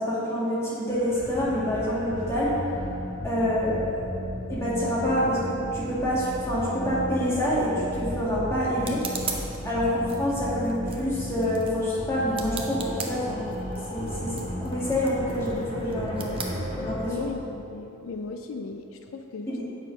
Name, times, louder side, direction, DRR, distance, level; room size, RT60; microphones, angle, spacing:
voice 1, 0.0-2.5 3.2-4.0 4.5-9.0 9.6-13.5 13.9-14.3 14.6-17.1 19.5-19.6, equal, 15° left, -8 dB, 1.9 m, -27 dB
sound 1, 0.9-16.9, equal, 30° left, 1.7 m, -35 dB
sound 2, 7.5-17.3, right 5 dB, 25° right, 0.6 m, -41 dB
voice 2, 17.1-19.6, left 4 dB, 75° left, 6 dB, 0.4 m, -36 dB
7.4 x 6.3 x 5.2 m, 3.0 s
head